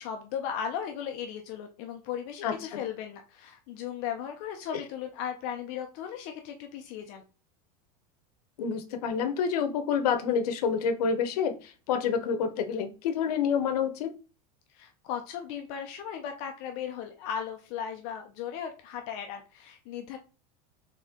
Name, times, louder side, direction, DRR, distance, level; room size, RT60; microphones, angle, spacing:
voice 1, 0.0-7.2 14.7-20.2, left 8 dB, 35° left, 4 dB, 0.4 m, -36 dB
voice 2, 2.4-2.8 8.6-14.1, left 6 dB, 75° left, 8 dB, 0.8 m, -28 dB
4.1 x 3.5 x 3.6 m, 0.34 s
supercardioid pair, 180°, 20 cm